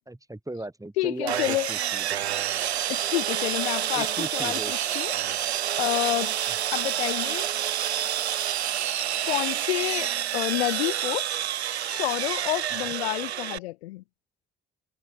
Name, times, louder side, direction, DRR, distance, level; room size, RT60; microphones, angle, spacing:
voice 1, 0.1-2.3 3.9-4.7 12.7-12.9, right 1 dB, 10° right, 5.4 m, -37 dB
voice 2, 1.0-1.7 2.9-5.1 5.8-6.4 6.7-7.5 9.3-11.3 11.9-14.0, left 18 dB, 80° left, 0.8 m, -29 dB
Sawing, 1.3-13.6, right 11 dB, 85° right, 1.5 m, -28 dB
figure-of-eight pair, 45°, 32 cm